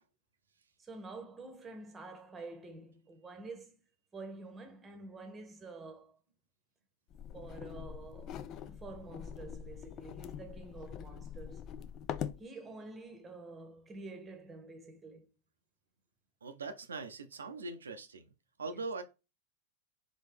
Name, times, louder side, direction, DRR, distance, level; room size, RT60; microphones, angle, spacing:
voice 1, 0.8-3.8 4.1-6.2 7.3-11.6 12.4-15.3 18.7-18.8, right 3 dB, 15° right, 1.1 m, -48 dB
sound 1, 7.1-12.4, left 9 dB, 35° left, 0.4 m, -43 dB
voice 2, 16.4-18.3 18.6-19.0, right 3 dB, 70° right, 0.6 m, -41 dB
4.2 x 3.3 x 3.4 m
figure-of-eight pair, 90°, 0 cm